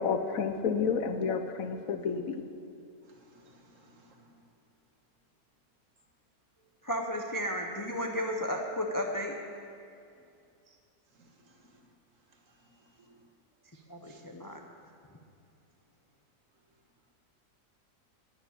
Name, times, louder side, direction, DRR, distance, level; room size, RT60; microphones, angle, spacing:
voice 1, 0.0-2.4, left 5 dB, 70° left, 7 dB, 1.1 m, -30 dB
voice 2, 3.1-4.3 13.1-13.2 14.1-14.2, right 1 dB, 55° right, 2 dB, 1.7 m, -60 dB
voice 3, 6.8-9.4 13.7-14.6, equal, 20° left, 1 dB, 0.5 m, -33 dB
12.0 x 7.2 x 9.5 m, 2.5 s
omnidirectional pair, 1.6 m